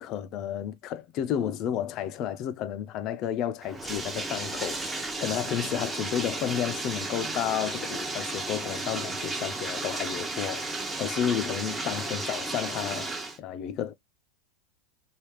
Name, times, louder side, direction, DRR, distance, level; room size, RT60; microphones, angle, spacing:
voice 1, 0.0-13.1 13.4-13.9, left 10 dB, 45° left, 0.4 m, -32 dB
Bathtub (filling or washing), 3.6-13.4, right 2 dB, 10° right, 0.7 m, -34 dB
3.3 x 2.3 x 3.0 m
supercardioid pair, 125°, 0 cm